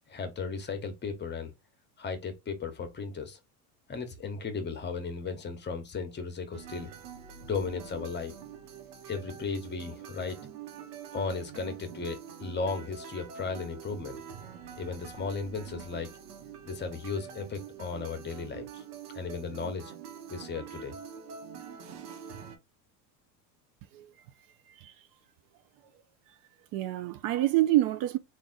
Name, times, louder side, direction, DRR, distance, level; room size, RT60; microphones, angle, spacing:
voice 1, 0.1-1.5 2.0-3.4 3.9-6.9 7.5-8.3 9.1-10.4 11.1-14.2 14.8-16.1 16.6-18.8 19.1-19.9 20.3-21.0, left 4 dB, 25° left, 1.0 m, -35 dB
sound 1, 6.5-22.6, right 8 dB, 85° right, 1.1 m, -45 dB
voice 2, 26.7-28.2, right 15 dB, 50° right, 0.5 m, -27 dB
3.4 x 2.6 x 3.8 m
hypercardioid pair, 100°, 46 cm